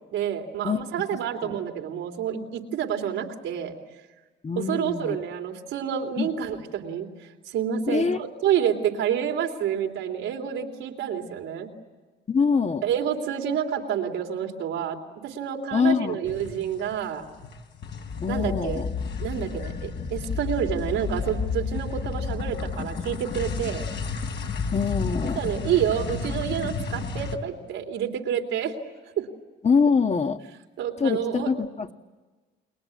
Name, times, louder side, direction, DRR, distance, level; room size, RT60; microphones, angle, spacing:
voice 1, 0.1-3.7 4.5-7.1 7.4-11.7 12.8-15.0 15.2-17.2 18.3-18.8 19.2-23.8 25.3-28.7 29.2-29.3 30.8-31.5, right 9 dB, 90° right, 3 dB, 3.3 m, -28 dB
voice 2, 1.1-1.6 4.4-5.2 6.2-6.3 7.9-8.2 12.3-12.8 15.7-16.2 18.2-18.9 24.7-25.4 29.6-30.4 31.0-31.9, left 5 dB, 35° left, 7 dB, 1.4 m, -24 dB
sound 1, 16.2-17.0 17.3-27.4, left 5 dB, 60° left, 3.5 m, -31 dB
30.0 x 22.0 x 8.5 m, 1.3 s
cardioid pair, 90°, 20 cm